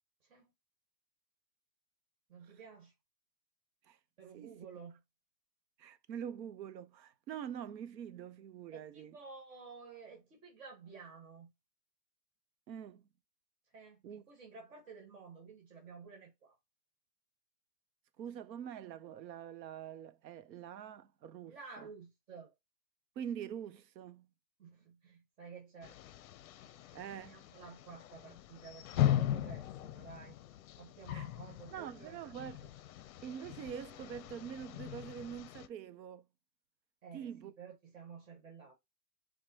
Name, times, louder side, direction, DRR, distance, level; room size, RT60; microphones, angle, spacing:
voice 1, 2.3-2.9 4.2-5.0 8.7-11.5 13.7-16.6 21.5-22.5 24.6-26.0 26.8-30.4 30.8-32.2 37.0-38.7, right 5 dB, 50° right, 1.5 m, -52 dB
voice 2, 5.8-9.2 12.7-13.1 14.0-14.2 18.2-21.9 23.2-24.3 26.9-27.4 31.1-31.3 31.7-32.8 33.2-36.3 37.1-37.5, right 9 dB, 85° right, 0.7 m, -45 dB
sound 1, 25.8-35.7, left 12 dB, 60° left, 0.5 m, -39 dB
4.5 x 2.2 x 2.8 m
hypercardioid pair, 150°, 50 cm